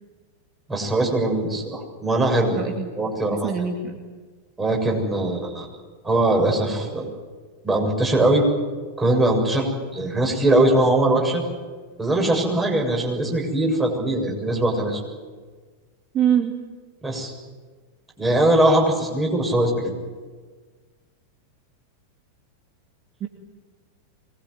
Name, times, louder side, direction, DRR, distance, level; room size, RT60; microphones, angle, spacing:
voice 1, 0.7-2.6 3.0-3.5 4.6-5.7 6.0-7.0 7.6-8.4 9.0-11.4 12.0-15.0 17.0-17.3 18.2-20.0, right 1 dB, 15° right, 1 dB, 7.3 m, -21 dB
voice 2, 2.5-2.9 3.3-4.0 16.1-16.5 23.2-23.3, right 8 dB, 30° right, 3 dB, 2.6 m, -23 dB
24.0 x 21.0 x 9.6 m, 1.4 s
figure-of-eight pair, 90°, 0 cm